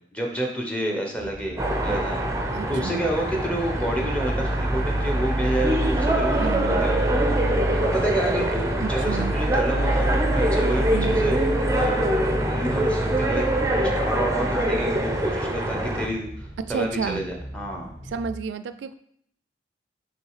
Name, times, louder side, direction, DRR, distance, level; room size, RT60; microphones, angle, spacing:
voice 1, 0.1-2.2 2.7-7.1 7.8-12.1 12.4-13.5 13.8-17.9, right 1 dB, 5° left, 0 dB, 0.9 m, -29 dB
sound 1, 1.1-18.3, equal, 40° left, 2.1 m, -40 dB
sound 2, 1.6-16.1, right 1 dB, 15° right, 0.5 m, -23 dB
voice 2, 2.5-3.1 6.4-6.8 8.8-9.4 10.9-11.2 16.7-17.2 18.1-18.9, right 6 dB, 85° right, 11 dB, 0.3 m, -31 dB
6.3 x 3.1 x 4.8 m, 0.69 s
head